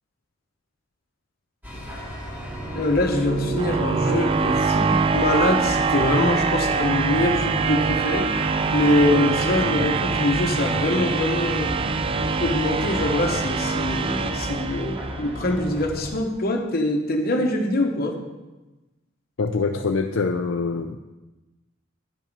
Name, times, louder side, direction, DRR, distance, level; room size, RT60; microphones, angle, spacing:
sound 1, 1.6-16.1, equal, 10° right, 2.3 m, -35 dB
sound 2, 2.4-15.4, right 4 dB, 25° right, 0.4 m, -24 dB
voice 1, 2.7-8.3 8.7-11.7 12.4-18.2, left 1 dB, 50° left, 3 dB, 1.1 m, -24 dB
voice 2, 19.4-21.0, left 4 dB, 70° left, 4 dB, 0.5 m, -24 dB
9.7 x 5.6 x 5.4 m, 1.1 s
head